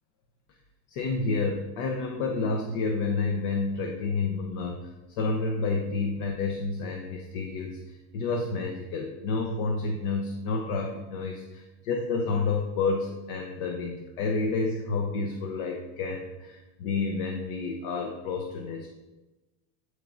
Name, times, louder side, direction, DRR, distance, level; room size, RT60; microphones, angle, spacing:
voice 1, 0.9-4.8 5.2-18.9, left 4 dB, 65° left, 2 dB, 1.0 m, -30 dB
11.5 x 4.7 x 2.6 m, 1.1 s
supercardioid pair, 115°, 47 cm